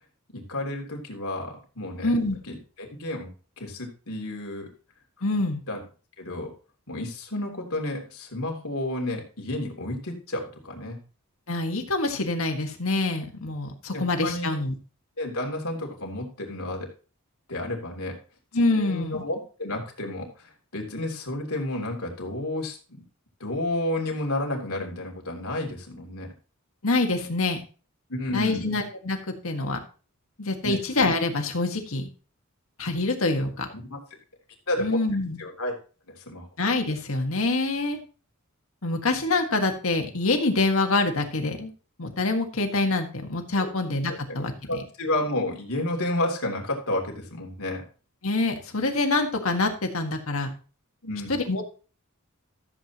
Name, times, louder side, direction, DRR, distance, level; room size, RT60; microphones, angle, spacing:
voice 1, 0.3-2.1 2.5-3.3 3.6-4.7 5.7-5.8 6.2-6.5 6.9-11.0 13.9-14.6 15.2-16.9 17.5-18.1 18.8-23.0 23.4-26.3 28.1-28.7 30.6-30.8 33.7-34.0 34.7-35.0 35.4-35.7 36.1-36.5 43.6-43.7 44.1-44.4 44.6-47.8 51.0-51.3, left 1 dB, 90° left, 1 dB, 3.1 m, -31 dB
voice 2, 2.0-2.4 5.2-5.6 11.5-14.7 18.5-19.2 26.8-27.6 28.3-29.8 30.4-32.1 32.8-33.7 34.8-35.4 36.6-38.0 38.8-41.7 42.0-44.8 48.2-50.5 51.3-51.7, left 2 dB, 70° left, 4 dB, 1.7 m, -26 dB
14.0 x 7.8 x 3.0 m, 0.37 s
head